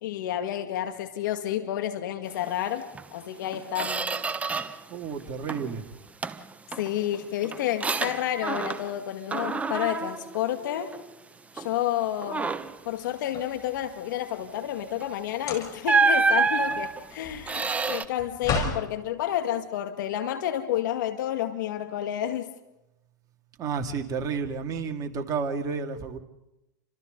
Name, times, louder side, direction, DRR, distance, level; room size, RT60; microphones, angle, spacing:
voice 1, 0.0-4.1 6.8-10.9 11.5-12.5 12.9-22.5, left 11 dB, 70° left, 7 dB, 2.1 m, -30 dB
Squeak, 2.9-3.1 3.5-4.9 5.2-5.8 6.2-9.0 9.3-11.1 11.6-11.8 12.2-12.8 15.0-15.1 15.8-18.1, right 4 dB, 15° right, 1.1 m, -28 dB
voice 2, 4.9-5.8 23.6-26.2, right 5 dB, 35° right, 4 dB, 2.5 m, -31 dB
sound 1, 12.9-14.1 15.3-16.0 16.4-18.9, left 3 dB, 35° left, 5.2 m, -34 dB
30.0 x 26.0 x 4.0 m, 0.92 s
hypercardioid pair, 115°, 11 cm